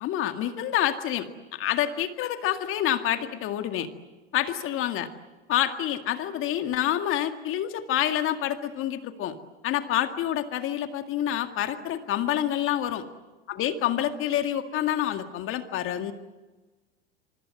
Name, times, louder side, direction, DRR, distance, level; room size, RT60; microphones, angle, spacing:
voice 1, 0.0-3.9 4.3-5.1 5.5-9.4 9.6-13.0 13.6-16.1, left 11 dB, 40° left, 8 dB, 2.1 m, -27 dB
26.0 x 25.0 x 7.8 m, 1.2 s
hypercardioid pair, 85°, 32 cm